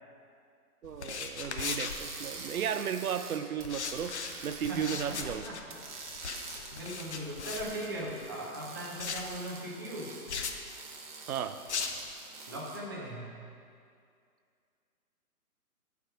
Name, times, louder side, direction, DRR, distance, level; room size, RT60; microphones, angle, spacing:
sound 1, 0.8-2.7 3.6-8.3 9.0-9.4 10.3-10.6 11.7-12.1, left 5 dB, 50° left, 0.7 m, -38 dB
voice 1, 0.8-4.1 4.4-5.5 11.3-11.6, right 8 dB, 65° right, 10 dB, 0.6 m, -34 dB
sound 2, 1.6-5.4 5.7-12.8, right 4 dB, 30° right, 1.0 m, -47 dB
voice 2, 4.7-5.6 6.7-10.2 12.5-13.3, right 1 dB, 15° right, -4 dB, 0.6 m, -39 dB
12.5 x 4.7 x 4.8 m, 2.4 s
hypercardioid pair, 150°, 45 cm